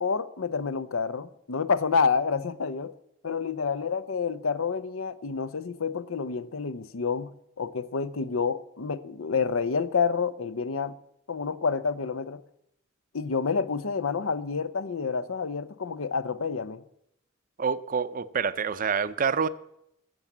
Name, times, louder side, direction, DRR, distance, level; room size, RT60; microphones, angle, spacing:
voice 1, 0.0-2.9 3.2-7.3 7.6-10.9 11.3-12.4 13.1-16.8, left 5 dB, 85° left, 0.7 m, -28 dB
voice 2, 17.6-19.5, right 6 dB, 40° right, 0.6 m, -27 dB
13.5 x 8.0 x 7.2 m
head